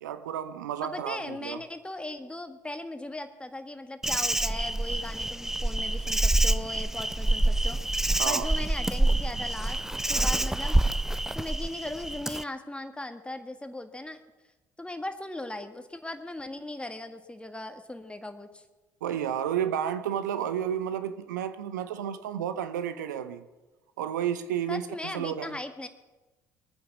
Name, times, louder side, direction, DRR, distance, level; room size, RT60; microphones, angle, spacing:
voice 1, 0.0-1.6 8.2-8.5 19.0-23.4 24.0-25.6, right 9 dB, 75° right, 0.8 m, -31 dB
voice 2, 0.8-7.8 8.3-10.8 11.4-14.2 14.8-18.6 24.7-25.9, left 2 dB, 10° left, 1.8 m, -38 dB
Insect, 4.0-12.4, right 1 dB, 5° right, 0.6 m, -27 dB
22.5 x 9.2 x 6.2 m
figure-of-eight pair, 50°, 10 cm